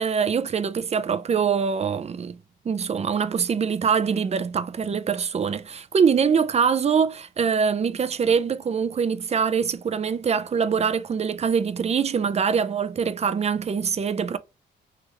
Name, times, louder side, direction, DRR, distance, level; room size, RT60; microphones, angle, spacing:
voice 1, 0.0-2.4 2.6-14.4, right 6 dB, 35° right, 0.5 m, -24 dB
3.5 x 3.3 x 3.0 m
cardioid pair, 90°, 20 cm